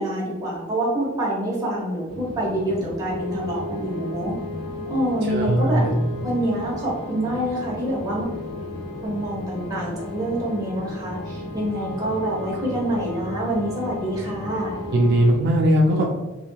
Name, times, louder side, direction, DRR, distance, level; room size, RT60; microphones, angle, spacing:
voice 1, 0.0-4.3 4.9-5.9 6.2-8.3 9.0-14.8, right 1 dB, 20° right, -4 dB, 0.9 m, -26 dB
sound 1, 2.1-15.4, left 1 dB, 30° left, 0.8 m, -36 dB
sound 2, 3.1-15.3, left 2 dB, 75° left, 0.7 m, -37 dB
voice 2, 5.3-5.9 14.9-16.1, right 1 dB, 55° right, -1 dB, 0.3 m, -19 dB
3.4 x 2.6 x 2.2 m, 1.2 s
head